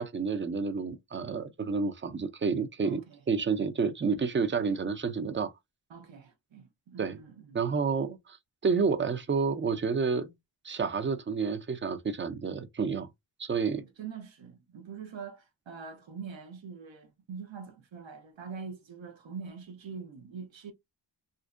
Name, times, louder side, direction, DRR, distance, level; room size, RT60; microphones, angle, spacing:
voice 1, 0.0-3.0 3.3-5.5 7.0-7.2 7.5-8.4 8.6-10.3 10.6-13.1 13.4-13.8, right 5 dB, 25° right, 0.4 m, -29 dB
voice 2, 2.8-3.2 5.9-7.8 13.7-20.7, right 6 dB, 75° right, 0.8 m, -44 dB
2.5 x 2.1 x 2.4 m
cardioid pair, 50°, 46 cm